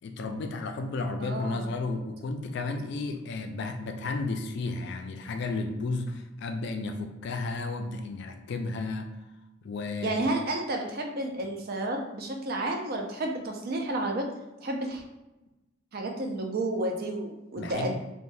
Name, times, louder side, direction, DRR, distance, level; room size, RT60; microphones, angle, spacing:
voice 1, 0.0-9.1 9.6-10.1 17.6-18.0, left 3 dB, 60° left, 6 dB, 0.3 m, -33 dB
voice 2, 1.2-1.7 10.0-14.3 14.6-15.0 15.9-18.0, right 2 dB, 50° right, 3 dB, 0.4 m, -31 dB
3.1 x 2.1 x 2.6 m, 1.0 s
head